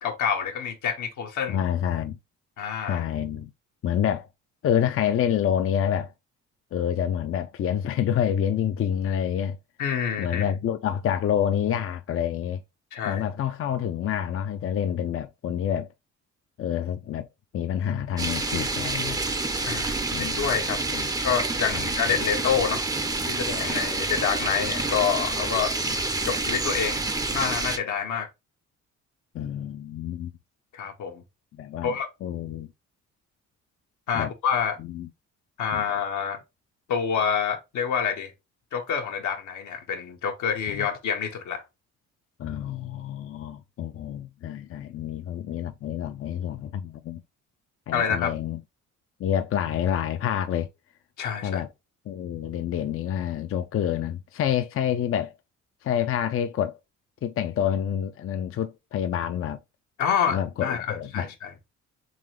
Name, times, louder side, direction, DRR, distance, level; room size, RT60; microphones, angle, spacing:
voice 1, 0.0-1.6 2.6-3.0 9.8-10.5 12.9-13.2 19.6-20.8 21.2-22.8 23.3-25.7 26.2-27.0 27.3-28.3 30.7-31.2 31.8-32.1 34.1-34.8 35.6-36.4 36.9-38.3 38.7-41.6 47.9-48.3 51.2-51.6 60.0-61.7, left 7 dB, 75° left, 1.1 m, -27 dB
voice 2, 1.5-2.2 2.9-3.5 3.8-4.3 4.6-6.1 6.7-9.6 10.2-12.6 13.1-15.9 16.6-17.3 17.5-19.2 20.1-20.4 20.9-21.1 21.7-22.2 29.3-30.3 31.5-31.9 32.2-32.7 34.1-34.3 34.8-35.1 35.7-35.8 40.7-40.9 42.4-47.2 47.9-48.6 49.2-50.7 51.4-51.7 52.1-55.3 55.8-56.8 57.2-59.6 60.3-61.3, left 9 dB, 45° left, 0.5 m, -28 dB
sound 1, 18.2-27.8, right 3 dB, 10° right, 0.5 m, -28 dB
3.9 x 3.2 x 3.1 m
cardioid pair, 90°, 30 cm